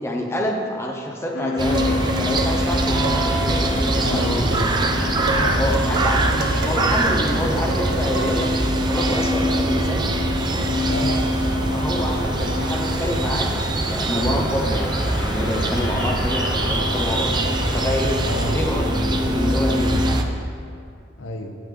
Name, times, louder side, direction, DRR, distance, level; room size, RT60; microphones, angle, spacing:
voice 1, 0.0-4.5 5.6-10.1 11.7-18.2 18.5-20.2, equal, 15° left, 1 dB, 0.7 m, -27 dB
sound 1, 1.3-20.1, left 3 dB, 60° left, 0.5 m, -28 dB
sound 2, 1.6-20.2, right 2 dB, 25° right, 0.5 m, -23 dB
Dishes pots and pans, 1.7-8.6, right 2 dB, 55° right, 0.8 m, -31 dB
voice 2, 2.8-3.1 4.0-4.7 5.2-5.6 10.8-11.3 18.2-18.5 21.2-21.6, left 2 dB, 85° left, 5 dB, 0.7 m, -29 dB
8.5 x 7.8 x 3.8 m, 2.3 s
head